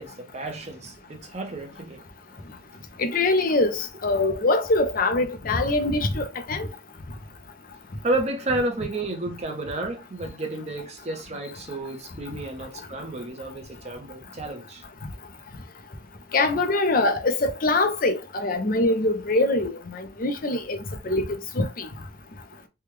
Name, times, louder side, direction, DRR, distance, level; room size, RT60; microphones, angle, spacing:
voice 1, 0.0-2.0 8.0-14.8, right 2 dB, 35° right, 0.8 m, -31 dB
voice 2, 3.0-6.7 16.3-20.8 21.0-21.3 21.5-21.9, left 2 dB, 45° left, 0.6 m, -23 dB
3.4 x 2.3 x 3.1 m
head